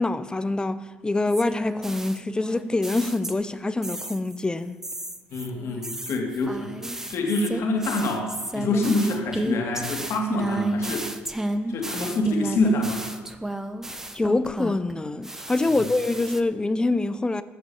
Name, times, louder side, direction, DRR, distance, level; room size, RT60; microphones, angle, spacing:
voice 1, 0.0-4.8 14.1-17.4, left 2 dB, 15° left, 0.7 m, -25 dB
sound 1, 1.3-3.6 3.8-4.4 4.8-14.9 15.2-16.4, right 1 dB, 10° right, 0.9 m, -32 dB
voice 2, 5.3-6.7 7.1-11.1 11.7-13.2 15.7-15.9, left 2 dB, 65° left, 2.6 m, -26 dB
14.0 x 6.9 x 7.1 m
supercardioid pair, 80°, 5 cm